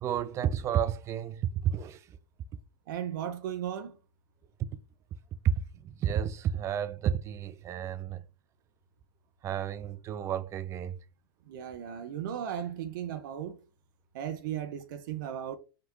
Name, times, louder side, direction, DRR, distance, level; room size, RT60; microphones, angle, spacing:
voice 1, 0.0-2.0 5.4-5.5 5.8-8.2 9.4-11.0, right 9 dB, 25° right, 0.3 m, -31 dB
voice 2, 2.9-3.9 11.5-13.5 14.1-15.6, right 9 dB, 60° right, 0.7 m, -36 dB
5.9 x 2.3 x 3.0 m
hypercardioid pair, 120°, 12 cm